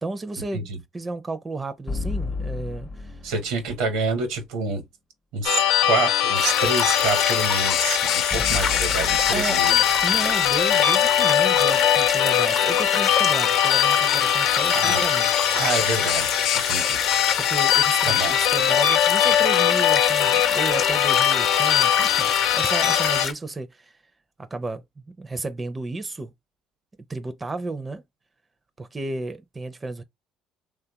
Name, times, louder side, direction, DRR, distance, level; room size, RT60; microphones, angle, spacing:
voice 1, 0.0-3.2 9.3-9.6 10.0-15.3 17.4-24.0 24.4-26.3 27.1-28.0 28.8-30.0, right 3 dB, 25° right, 0.4 m, -33 dB
sound 1, 1.9-4.1 8.3-11.5, left 3 dB, 25° left, 0.5 m, -34 dB
voice 2, 3.2-4.9 5.3-9.8 14.7-15.0 15.5-17.0 18.0-18.3, right 4 dB, 90° right, 1.0 m, -28 dB
sound 2, 5.4-23.3, left 11 dB, 85° left, 0.4 m, -21 dB
sound 3, 6.3-23.3, left 6 dB, 55° left, 0.7 m, -27 dB
3.2 x 2.3 x 2.8 m
supercardioid pair, 90°, 0 cm